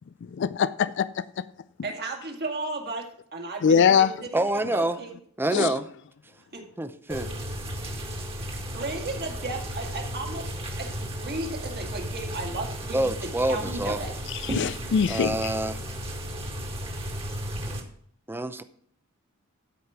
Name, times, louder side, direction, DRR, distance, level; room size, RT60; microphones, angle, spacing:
voice 1, 0.4-1.1 3.6-4.1 5.5-5.7 14.4-15.3, left 7 dB, 55° left, 0.4 m, -22 dB
voice 2, 1.8-3.0 3.3-5.1 6.5-6.6 8.7-10.5 10.8-13.1 13.5-14.1, right 3 dB, 50° right, 2.1 m, -34 dB
voice 3, 4.3-5.0 5.4-5.9 6.8-7.3 12.9-14.0 15.1-15.8 18.3-18.6, right 1 dB, 10° right, 0.6 m, -27 dB
sound 1, 7.1-17.8, equal, 25° right, 1.8 m, -34 dB
12.5 x 5.1 x 5.8 m
head